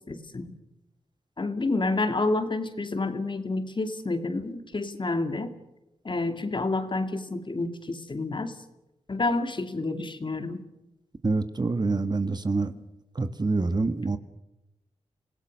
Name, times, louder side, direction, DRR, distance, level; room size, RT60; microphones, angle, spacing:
voice 1, 0.1-0.6 1.4-5.5 6.0-8.5 9.1-10.6 12.8-12.9, left 2 dB, 45° left, 7 dB, 2.6 m, -29 dB
voice 2, 11.2-12.7 13.1-14.2, right 3 dB, 35° right, 10 dB, 1.7 m, -26 dB
26.5 x 17.0 x 6.5 m, 0.92 s
wide cardioid pair, 70°, 12 cm